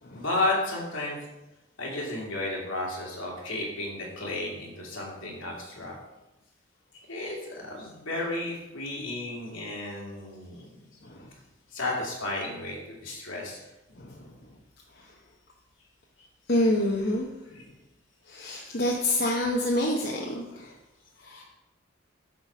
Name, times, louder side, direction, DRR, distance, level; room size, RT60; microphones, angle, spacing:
voice 1, 0.1-1.2 1.8-6.0 7.1-7.4 7.6-10.7 11.7-13.6 18.6-18.9, left 2 dB, 75° left, -3 dB, 2.4 m, -33 dB
voice 2, 14.0-14.3 14.9-15.1 16.5-17.3 18.3-20.8 21.2-21.4, left 1 dB, 50° left, -1 dB, 0.9 m, -28 dB
8.3 x 4.2 x 5.9 m, 1.0 s
head